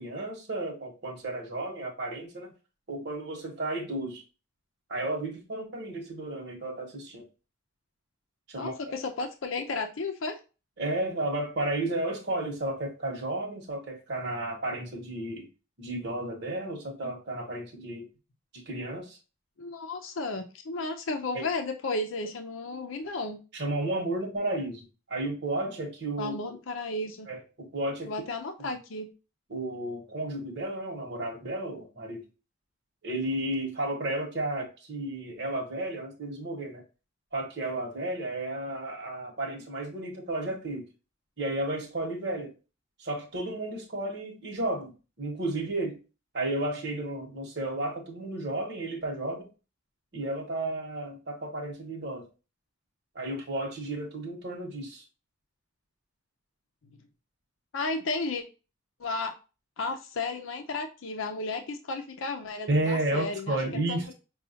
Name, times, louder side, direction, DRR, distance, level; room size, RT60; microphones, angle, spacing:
voice 1, 0.0-2.5 2.9-4.2 4.9-7.3 8.5-8.7 10.8-15.5 15.8-18.1 18.5-19.2 21.3-21.4 23.5-26.6 27.3-28.2 28.6-28.7 29.5-32.2 33.0-36.8 37.3-40.9 41.4-42.5 43.0-46.0 46.3-49.5 50.1-52.3 53.1-55.0 62.7-64.1, right 1 dB, 60° right, 0 dB, 1.1 m, -33 dB
voice 2, 8.6-10.4 19.6-23.4 26.2-27.3 28.1-29.1 57.7-58.4 59.0-59.3 59.8-64.1, left 3 dB, 80° left, 5 dB, 0.5 m, -33 dB
5.5 x 2.3 x 2.7 m, 0.31 s
head